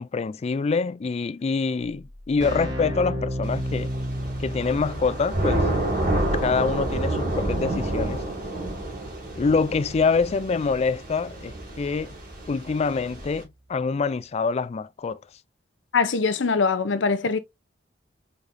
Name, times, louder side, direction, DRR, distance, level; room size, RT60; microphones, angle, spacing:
voice 1, 0.0-3.9 4.4-5.6 6.4-8.2 9.4-12.2 12.5-15.2, left 4 dB, 35° left, 0.3 m, -25 dB
Keyboard (musical), 1.8-12.7, equal, 65° right, 1.8 m, -35 dB
Thunder / Rain, 3.5-13.4, right 1 dB, 50° right, 2.3 m, -29 dB
voice 2, 15.9-17.4, left 4 dB, 90° left, 0.7 m, -22 dB
4.9 x 4.0 x 2.6 m
head